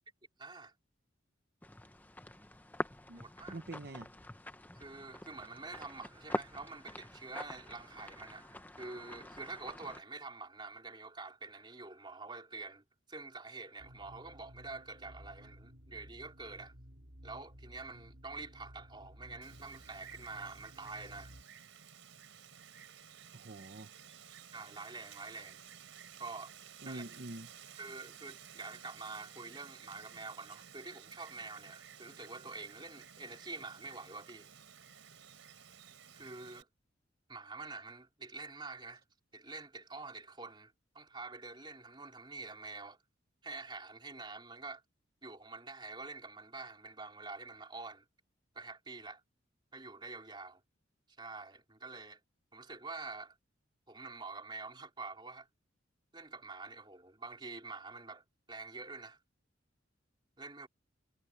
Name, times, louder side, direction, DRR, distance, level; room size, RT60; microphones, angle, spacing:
voice 1, 0.4-0.7 3.1-3.6 4.7-16.7 17.2-21.3 24.5-25.6 26.2-26.5 26.8-27.0 27.8-34.5 36.1-36.7 37.3-39.0 39.3-43.0 43.4-44.8 45.2-48.0 48.5-49.2 49.7-50.6 51.2-52.2 52.5-53.4 53.9-55.5 56.1-59.2 60.4-60.7, right 3 dB, 25° right, 3.4 m, -47 dB
sound 1, 1.6-10.0, left 1 dB, 10° left, 0.8 m, -45 dB
voice 2, 3.1-4.1 23.3-23.9 26.8-27.5, right 2 dB, 50° right, 0.9 m, -46 dB
sound 2, 13.8-21.4, equal, 70° right, 4.5 m, -55 dB
Wind, 19.4-36.6, right 8 dB, 85° right, 4.2 m, -55 dB
head